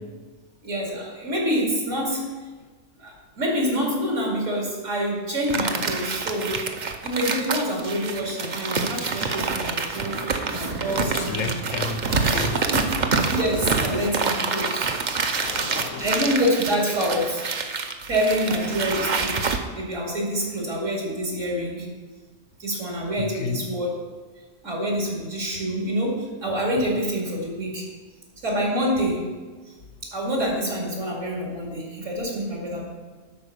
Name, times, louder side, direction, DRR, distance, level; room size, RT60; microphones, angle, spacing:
voice 1, 0.6-2.2 3.0-6.5 7.0-11.8 12.7-12.8 13.3-14.9 16.0-17.4 18.1-19.4 19.7-21.9 22.6-23.9 24.6-27.9 28.4-29.2 29.7-29.8 30.0-32.8, equal, 75° right, -2 dB, 2.8 m, -26 dB
sound 1, 5.5-19.6, right 4 dB, 45° right, 0.7 m, -27 dB
voice 2, 11.0-12.7 15.3-16.1 23.2-23.6, left 5 dB, 80° left, 8 dB, 1.2 m, -32 dB
11.0 x 4.4 x 6.9 m, 1.4 s
omnidirectional pair, 1.3 m